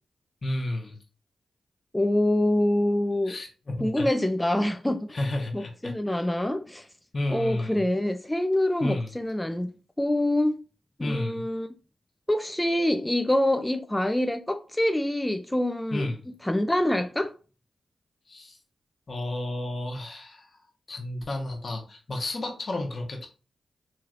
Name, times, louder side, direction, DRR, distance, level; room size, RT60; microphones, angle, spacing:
voice 1, 0.4-1.0 3.2-4.1 5.1-6.3 7.1-7.8 8.8-9.1 11.0-11.4 15.9-16.2 18.3-18.6 19.1-20.5 20.9-23.3, left 1 dB, 50° left, 1.0 m, -32 dB
voice 2, 1.9-3.4 3.8-5.2 5.5-6.9 7.3-10.6 11.0-11.7 12.3-16.1 16.4-17.3, left 1 dB, 10° left, 0.3 m, -25 dB
3.1 x 3.0 x 2.4 m
cardioid pair, 50°, 0 cm